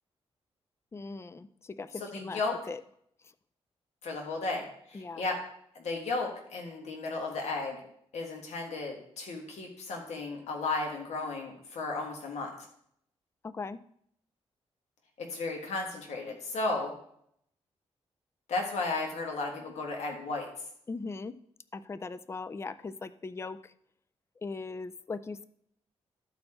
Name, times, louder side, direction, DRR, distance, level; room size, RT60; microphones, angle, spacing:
voice 1, 0.9-2.4 2.7-2.8 4.9-5.2 13.4-13.8 20.9-21.3 21.7-23.7 24.4-25.5, left 4 dB, 25° left, 14 dB, 0.4 m, -39 dB
voice 2, 2.0-2.6 4.0-5.4 5.8-7.8 8.1-12.5 15.2-16.9 18.5-20.5, left 3 dB, 80° left, 0 dB, 1.7 m, -34 dB
13.0 x 4.3 x 4.4 m, 0.69 s
cardioid pair, 90°, 11 cm